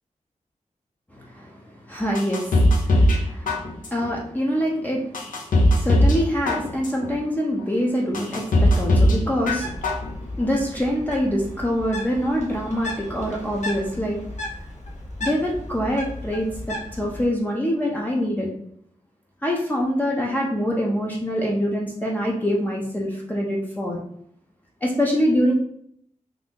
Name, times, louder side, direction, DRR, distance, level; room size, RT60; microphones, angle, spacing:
voice 1, 1.1-5.3 5.7-9.8 10.3-14.2 15.2-18.5 19.4-24.0 24.8-25.5, equal, 10° left, -2 dB, 0.5 m, -25 dB
sound 1, 2.1-3.2 3.5-4.1 4.6-4.7 5.1-6.2 6.5-7.1 7.6-7.7 8.1-9.2 9.5-10.1 10.4-10.5, left 1 dB, 90° left, 0.7 m, -19 dB
Bird, 9.4-17.2, left 1 dB, 60° left, 0.8 m, -35 dB
2.7 x 2.5 x 3.5 m, 0.67 s
wide cardioid pair, 125°, 14 cm